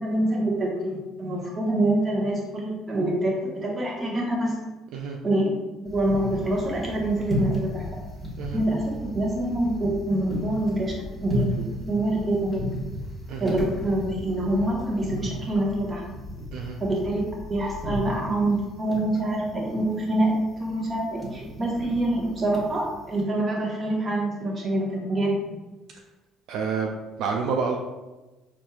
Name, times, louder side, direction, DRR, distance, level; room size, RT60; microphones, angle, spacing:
voice 1, 0.0-4.5 5.2-5.5 5.9-8.0 8.5-10.9 11.2-12.7 13.4-16.1 16.8-17.2 17.5-20.3 20.6-25.6, right 1 dB, 35° right, -2 dB, 1.1 m, -26 dB
sound 1, 5.8-23.2, equal, 15° right, 1.3 m, -35 dB
voice 2, 26.5-27.8, right 5 dB, 70° right, 1 dB, 0.3 m, -29 dB
4.2 x 2.6 x 2.3 m, 1.1 s
supercardioid pair, 75°, 0 cm